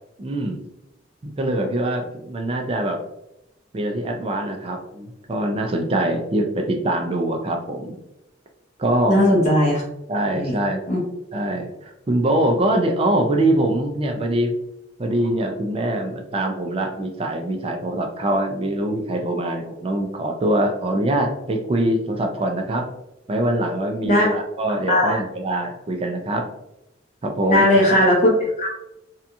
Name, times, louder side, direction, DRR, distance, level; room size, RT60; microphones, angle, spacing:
voice 1, 0.2-0.6 1.2-3.0 3.7-8.0 8.8-9.3 10.1-10.8 11.3-14.6 15.0-22.9 23.3-26.5 27.2-28.0, right 1 dB, 30° right, 3 dB, 0.3 m, -23 dB
voice 2, 9.1-9.8 10.3-10.5 10.9-11.0 24.0-24.3 24.9-25.2 27.5-28.3 28.6-28.7, left 1 dB, 40° left, -4 dB, 0.6 m, -17 dB
2.7 x 2.3 x 2.5 m, 0.86 s
head